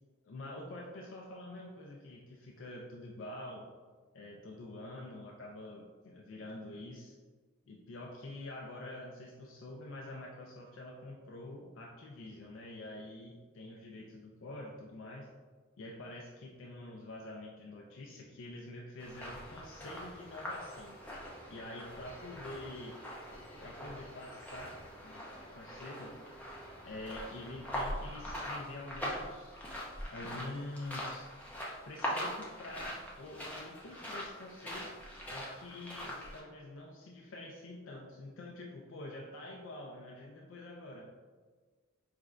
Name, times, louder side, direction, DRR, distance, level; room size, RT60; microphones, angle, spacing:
voice 1, 0.2-3.7 4.1-7.1 7.7-15.3 15.8-20.9 21.5-23.0 23.6-24.8 25.0-25.2 25.5-26.1 26.8-29.5 30.1-31.3 31.8-34.9 35.3-41.1, left 2 dB, 65° left, -1 dB, 0.4 m, -46 dB
sound 1, 19.0-36.4, equal, 5° left, 0.6 m, -42 dB
5.0 x 3.3 x 2.4 m, 1.5 s
head